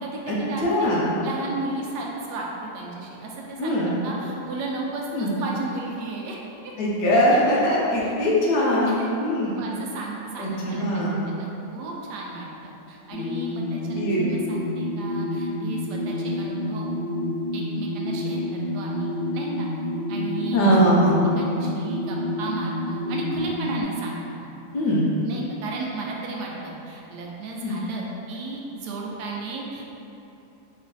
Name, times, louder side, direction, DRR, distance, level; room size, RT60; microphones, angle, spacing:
voice 1, 0.0-0.9 1.2-3.8 4.0-6.4 8.0-8.1 8.8-9.1 9.6-16.9 17.5-19.7 20.1-20.6 21.4-24.5 25.3-29.8, right 3 dB, 80° right, -2 dB, 1.1 m, -34 dB
voice 2, 0.6-1.2 3.6-3.9 5.1-5.3 6.8-9.6 10.4-11.2 14.0-14.3 20.5-21.2 24.7-25.1 27.6-27.8, equal, 80° left, -6 dB, 1.3 m, -21 dB
sound 1, 13.1-23.8, left 1 dB, 60° left, 0.8 m, -29 dB
3.3 x 3.1 x 3.8 m, 2.9 s
omnidirectional pair, 1.8 m